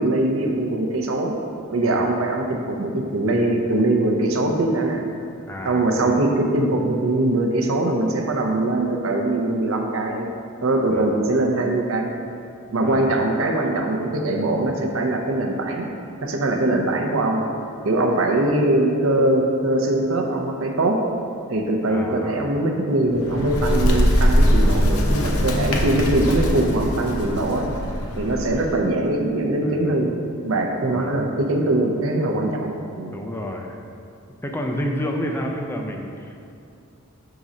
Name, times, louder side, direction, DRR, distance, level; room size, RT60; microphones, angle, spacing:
voice 1, 0.0-1.3 1.7-5.0 5.6-10.3 10.6-12.1 12.7-15.9 16.2-17.4 17.8-21.0 21.5-27.7 28.2-30.1 30.4-33.2, right 2 dB, 70° right, 2 dB, 0.6 m, -22 dB
voice 2, 5.5-6.1 10.9-11.1 12.8-13.1 21.9-22.6 29.6-30.0 30.8-31.1 33.1-33.8 34.4-36.5, equal, 10° left, 1 dB, 0.4 m, -30 dB
Bird, 23.0-28.8, equal, 85° left, 0.7 m, -21 dB
6.0 x 3.8 x 4.1 m, 2.5 s
head